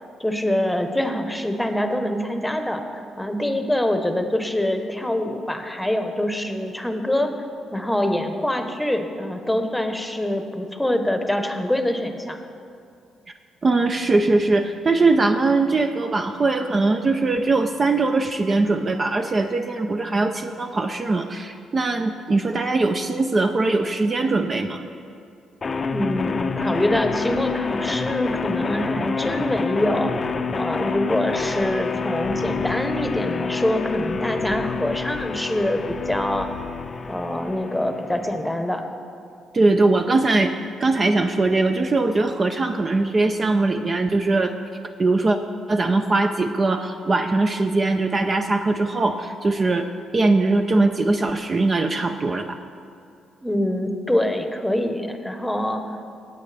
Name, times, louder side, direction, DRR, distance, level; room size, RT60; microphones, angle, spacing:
voice 1, 0.2-7.3 7.7-12.4 25.9-30.1 30.5-36.5 37.1-38.9 53.4-56.2, left 1 dB, 5° left, 6 dB, 1.0 m, -25 dB
voice 2, 13.6-24.8 39.5-40.5 40.8-44.5 45.0-45.4 45.7-52.6, right 3 dB, 35° right, 6 dB, 0.5 m, -21 dB
sound 1, 25.6-38.6, left 5 dB, 35° left, 0.5 m, -28 dB
sound 2, 31.6-37.4, left 6 dB, 85° left, 0.9 m, -42 dB
18.0 x 8.2 x 3.4 m, 2.5 s
cardioid pair, 90°, 0 cm